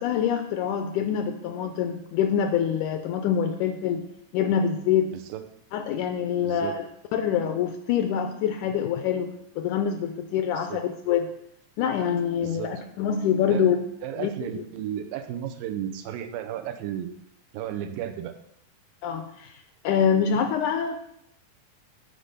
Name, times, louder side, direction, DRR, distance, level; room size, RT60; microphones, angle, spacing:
voice 1, 0.0-4.0 4.3-5.1 5.7-6.8 7.1-9.3 9.6-11.3 11.8-13.8 14.2-14.3 14.6-14.7 19.0-19.5 19.8-21.0, left 8 dB, 80° left, 7 dB, 1.9 m, -25 dB
voice 2, 5.1-5.4 6.4-6.8 10.5-10.8 12.4-12.8 13.5-13.8 14.0-17.1 17.5-18.3, right 10 dB, 85° right, 9 dB, 2.4 m, -34 dB
7.6 x 5.1 x 6.6 m, 0.74 s
omnidirectional pair, 4.0 m